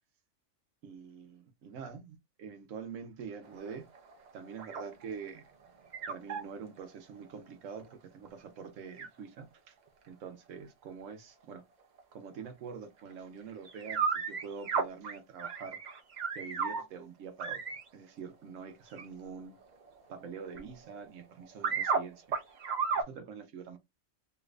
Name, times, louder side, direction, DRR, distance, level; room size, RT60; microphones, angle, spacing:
voice 1, 0.8-3.9 4.3-5.4 6.1-9.7 10.1-11.6 12.1-15.8 16.4-17.6 17.9-19.6 20.1-22.3 22.9-23.8, right 6 dB, 85° right, 1.0 m, -45 dB
sound 1, 3.4-5.2 5.6-6.5 7.9-8.0 8.3-8.4 8.6-8.7 9.0-9.1 12.0-12.1 13.1-13.2 13.7-16.8 17.4-17.9 18.9-19.2 19.6-21.1 21.4-22.0 22.3-23.0, right 5 dB, 45° right, 0.6 m, -33 dB
3.2 x 3.0 x 2.4 m
omnidirectional pair, 1.3 m